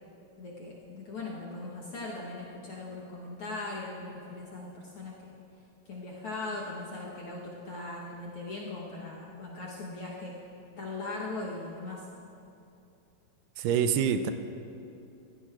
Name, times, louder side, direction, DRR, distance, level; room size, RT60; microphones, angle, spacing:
voice 1, 0.4-5.3 5.9-10.4 10.8-12.0, left 2 dB, 60° left, -5 dB, 1.5 m, -39 dB
voice 2, 13.6-14.3, right 8 dB, 80° right, 9 dB, 2.1 m, -26 dB
16.5 x 14.0 x 2.4 m, 2.7 s
omnidirectional pair, 3.8 m